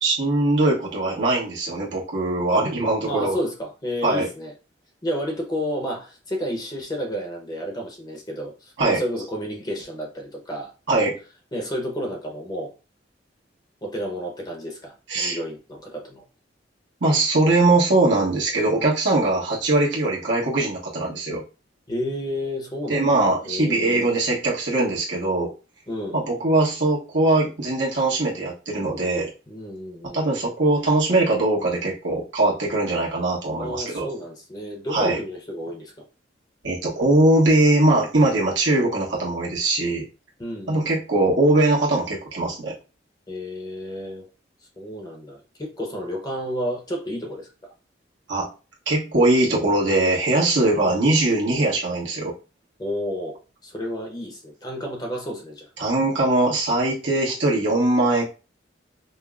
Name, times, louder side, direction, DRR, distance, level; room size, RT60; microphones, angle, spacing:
voice 1, 0.0-3.4 4.0-4.3 8.8-9.0 10.9-11.2 15.1-15.4 17.0-21.4 22.9-25.5 26.1-29.3 30.1-34.1 34.9-35.2 36.6-40.0 40.7-42.7 48.3-48.5 48.9-52.3 55.8-58.2, right 2 dB, 80° right, 1.2 m, -21 dB
voice 2, 3.0-4.5 5.0-10.7 11.5-12.7 13.8-16.2 21.9-24.1 25.9-26.2 29.5-30.3 33.5-35.9 40.4-40.9 43.3-44.3 44.8-47.7 50.8-51.0 52.8-55.9, equal, 20° left, 0.7 m, -31 dB
5.3 x 2.0 x 2.3 m
head